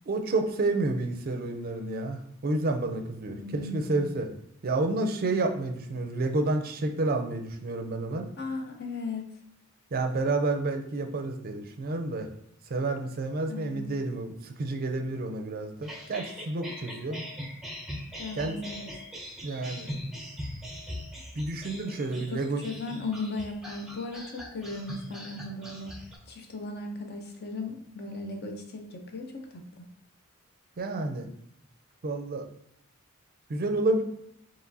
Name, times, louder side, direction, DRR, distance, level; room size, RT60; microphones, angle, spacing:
voice 1, 0.1-4.3 4.6-8.3 9.9-12.3 12.7-17.2 18.4-18.6 19.4-19.9 21.3-22.6 30.8-31.3 32.0-32.5 33.5-34.0, right 2 dB, 45° right, 5 dB, 0.4 m, -30 dB
voice 2, 3.4-4.1 8.4-9.3 13.5-13.9 18.2-18.9 22.1-25.9 26.3-29.9, left 3 dB, 50° left, 3 dB, 0.6 m, -37 dB
sound 1, 15.8-26.2, equal, ahead, 0.6 m, -41 dB
4.6 x 3.0 x 2.6 m, 0.73 s
head